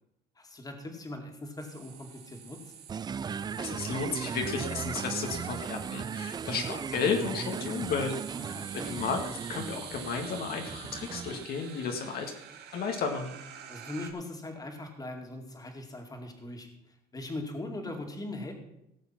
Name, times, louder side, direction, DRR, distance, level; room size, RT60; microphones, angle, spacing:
voice 1, 0.4-2.7 8.3-8.9 13.7-18.5, left 2 dB, 20° left, 4 dB, 2.4 m, -40 dB
Metal Ghost, 1.6-14.1, right 8 dB, 75° right, 2.0 m, -46 dB
sound 1, 2.9-11.5, right 6 dB, 25° right, 0.3 m, -37 dB
voice 2, 3.6-8.1 8.7-9.2 9.5-12.3 12.7-13.3, left 5 dB, 65° left, 3 dB, 1.7 m, -33 dB
17.5 x 6.8 x 5.9 m, 0.81 s
cardioid pair, 110°, 17 cm